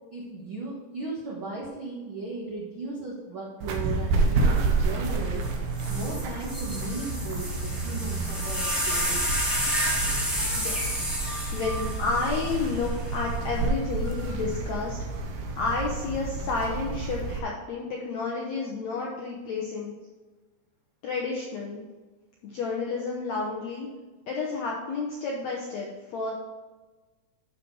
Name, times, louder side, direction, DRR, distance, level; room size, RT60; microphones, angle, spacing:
voice 1, 0.1-5.4 5.9-9.2, right 3 dB, 70° right, -4 dB, 1.1 m, -36 dB
sound 1, 3.6-17.4, right 3 dB, 90° right, 3.1 m, -29 dB
sound 2, 5.4-5.5 5.8-13.2 14.1-14.5, equal, ahead, 1.0 m, -31 dB
voice 2, 10.5-10.9 11.2-15.0 15.6-19.9 21.0-21.8 22.4-23.9 24.3-26.3, left 4 dB, 75° left, -3 dB, 1.6 m, -31 dB
12.0 x 4.3 x 4.7 m, 1.3 s
omnidirectional pair, 4.5 m